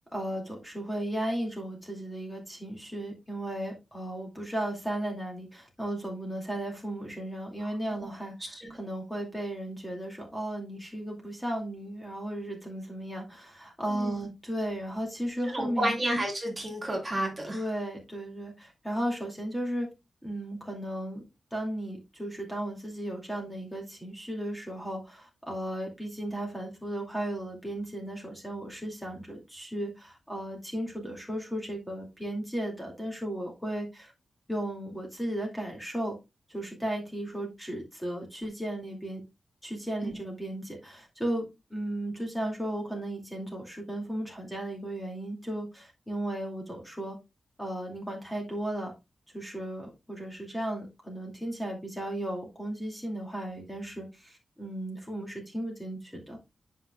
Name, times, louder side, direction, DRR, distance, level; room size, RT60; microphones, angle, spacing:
voice 1, 0.1-15.9 17.5-19.9 20.2-21.2 21.5-34.1 34.5-36.2 36.5-39.2 39.6-47.2 47.6-48.9 49.3-56.4, right 1 dB, 5° left, -1 dB, 2.3 m, -35 dB
voice 2, 7.6-8.0 8.4-8.7 13.9-14.2 15.4-17.7 40.0-40.1, right 1 dB, 25° right, 1 dB, 2.4 m, -32 dB
10.5 x 5.7 x 2.3 m, 0.23 s
wide cardioid pair, 150°, 0 cm